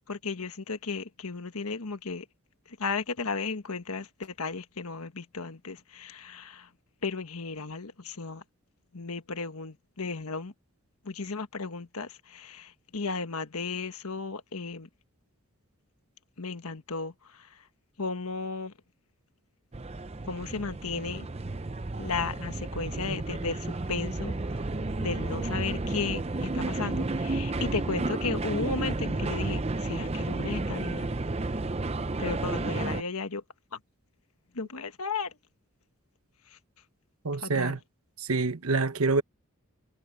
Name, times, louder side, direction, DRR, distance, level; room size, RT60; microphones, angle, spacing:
voice 1, 0.1-2.2 2.8-6.7 7.0-8.4 8.9-10.5 11.0-14.9 16.4-17.1 18.0-18.7 20.3-21.3 22.0-24.7 25.0-31.1 32.2-33.4 33.7-33.8 34.5-35.3 37.4-37.8, left 4 dB, 90° left, 1.5 m, -34 dB
sound 1, 19.7-33.0, right 2 dB, 30° right, 0.6 m, -32 dB
voice 2, 37.2-37.8 38.2-39.2, right 3 dB, 85° right, 1.2 m, -26 dB
head